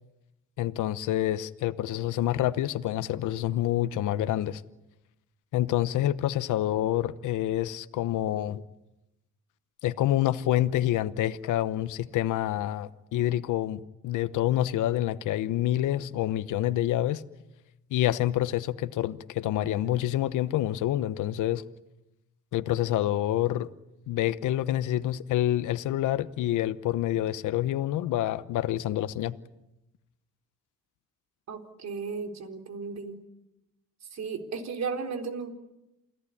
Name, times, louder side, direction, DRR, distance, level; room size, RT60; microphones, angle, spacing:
voice 1, 0.6-4.6 5.5-8.6 9.8-17.2 17.9-21.6 22.5-23.7 24.1-29.4, left 13 dB, 85° left, 1.0 m, -27 dB
voice 2, 31.5-33.2 34.1-35.5, right 5 dB, 60° right, 4.0 m, -35 dB
28.5 x 17.5 x 10.0 m
cardioid pair, 90°, 30 cm